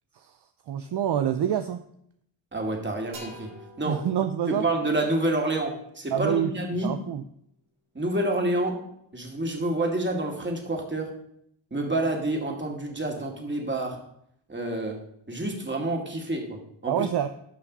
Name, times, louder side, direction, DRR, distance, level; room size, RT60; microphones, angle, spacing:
voice 1, 0.7-1.8 3.9-4.6 6.1-6.5 6.8-7.2 16.9-17.3, right 10 dB, 55° right, 8 dB, 0.6 m, -26 dB
voice 2, 2.5-3.5 3.8-4.1 4.5-6.9 7.9-8.8 9.1-11.1 11.7-14.0 14.5-15.0 15.3-17.1, right 1 dB, 20° right, 1 dB, 2.5 m, -28 dB
sound 1, 3.1-6.8, equal, 80° right, 3.2 m, -49 dB
11.5 x 5.9 x 4.1 m, 0.71 s
cardioid pair, 60°, 49 cm